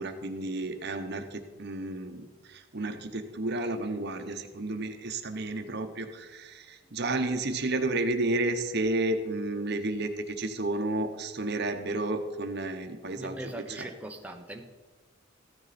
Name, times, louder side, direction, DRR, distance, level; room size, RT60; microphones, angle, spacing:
voice 1, 0.0-13.9, right 2 dB, 50° right, 7 dB, 1.0 m, -32 dB
voice 2, 13.2-14.7, right 1 dB, 5° right, 3 dB, 1.0 m, -40 dB
14.5 x 9.6 x 4.3 m, 1.3 s
head